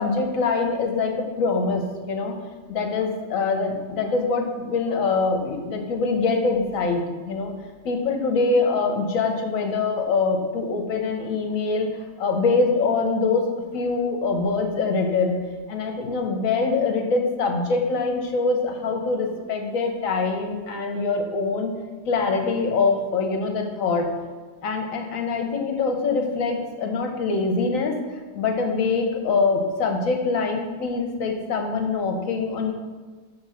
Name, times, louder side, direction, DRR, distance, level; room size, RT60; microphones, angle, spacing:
voice 1, 0.0-2.3 2.7-7.5 7.8-11.9 12.2-13.4 13.7-15.4 15.7-21.7 22.1-24.1 24.6-27.9 28.3-32.7, left 4 dB, 60° left, 3 dB, 1.1 m, -24 dB
6.0 x 3.6 x 5.6 m, 1.3 s
omnidirectional pair, 1.8 m